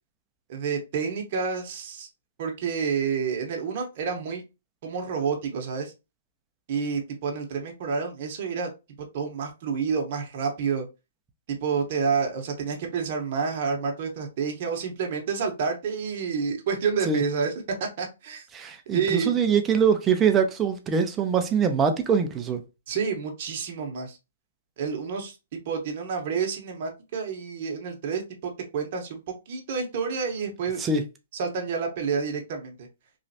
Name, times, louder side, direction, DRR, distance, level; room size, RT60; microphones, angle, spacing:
voice 1, 0.5-2.1 2.4-4.4 4.8-5.9 6.7-8.7 9.1-10.8 11.5-17.5 18.0-18.4 18.9-19.3 22.9-24.2 24.8-29.2 29.5-30.8 31.3-32.9, right 5 dB, 50° right, 0.9 m, -29 dB
voice 2, 18.5-22.6 30.8-31.0, right 6 dB, 20° right, 0.5 m, -23 dB
3.1 x 2.5 x 2.7 m
hypercardioid pair, 140°, 0 cm